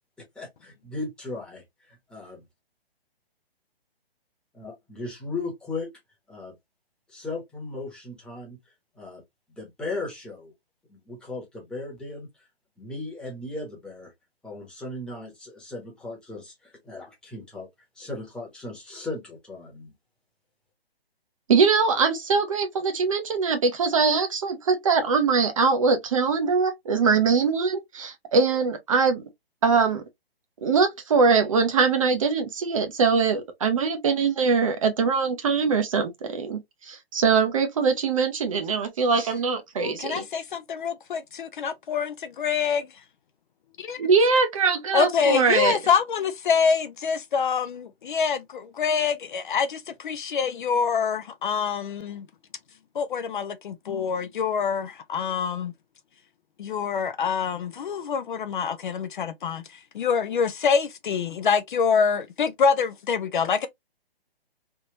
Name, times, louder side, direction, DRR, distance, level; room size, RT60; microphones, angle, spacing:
voice 1, 0.3-2.4 4.5-5.9 6.3-6.5 7.1-8.6 8.9-9.2 9.6-10.5 10.9-12.3 12.8-14.1 14.4-17.7 18.0-19.9, left 2 dB, 5° left, 1.0 m, -37 dB
voice 2, 21.5-29.2 29.6-30.0 30.6-40.2 44.0-45.8, right 5 dB, 35° right, 0.6 m, -22 dB
voice 3, 39.8-42.9 43.8-44.0 44.9-52.3 53.0-55.7 56.6-59.6 59.9-63.7, left 6 dB, 55° left, 0.5 m, -25 dB
3.4 x 2.8 x 2.8 m
hypercardioid pair, 155°, 31 cm